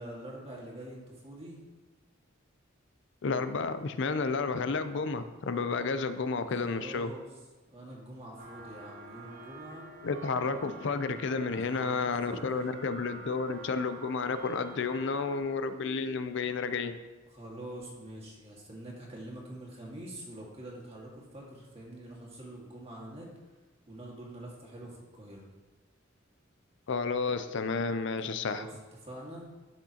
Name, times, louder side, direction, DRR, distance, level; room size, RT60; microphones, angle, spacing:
voice 1, 0.0-1.6 6.6-7.2 7.7-9.8 11.5-12.6 17.3-23.3 23.9-25.4 28.5-28.7 29.0-29.5, right 1 dB, 30° right, -3 dB, 1.9 m, -45 dB
voice 2, 3.2-7.1 10.0-16.9 26.9-28.6, left 4 dB, 65° left, 11 dB, 0.5 m, -31 dB
sound 1, 8.4-15.4, right 3 dB, 75° right, 2.8 m, -48 dB
12.0 x 6.2 x 2.9 m, 1.3 s
head